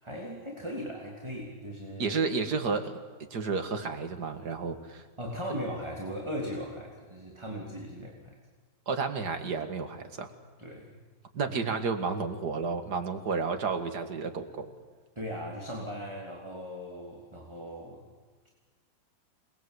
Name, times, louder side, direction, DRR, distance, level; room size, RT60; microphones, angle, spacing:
voice 1, 0.0-2.2 5.2-8.4 10.6-11.0 11.4-11.5 15.2-18.0, equal, 15° right, 0 dB, 2.8 m, -38 dB
voice 2, 2.0-3.0 3.3-5.0 8.9-10.3 11.3-14.7, right 4 dB, 60° right, 6 dB, 2.4 m, -31 dB
28.5 x 20.5 x 8.2 m, 1.4 s
omnidirectional pair, 2.0 m